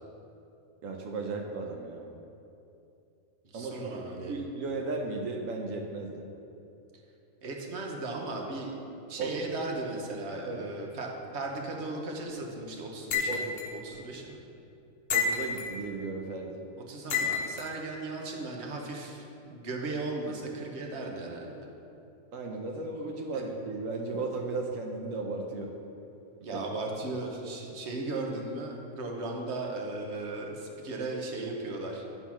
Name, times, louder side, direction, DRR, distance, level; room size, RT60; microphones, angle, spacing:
voice 1, 0.8-2.2 3.5-6.2 9.2-9.3 10.4-10.6 13.3-13.4 15.1-16.6 22.3-25.7 26.5-26.6, right 3 dB, 85° right, 1 dB, 1.1 m, -35 dB
voice 2, 3.5-4.4 7.4-8.7 9.1-13.4 13.7-14.4 16.9-21.6 23.3-23.4 26.4-32.1, right 2 dB, 60° right, 0 dB, 1.3 m, -36 dB
sound 1, 13.1-13.7 15.1-15.8 17.1-17.7, left 5 dB, 55° left, 0.9 m, -29 dB
10.0 x 4.0 x 5.9 m, 2.7 s
omnidirectional pair, 1.3 m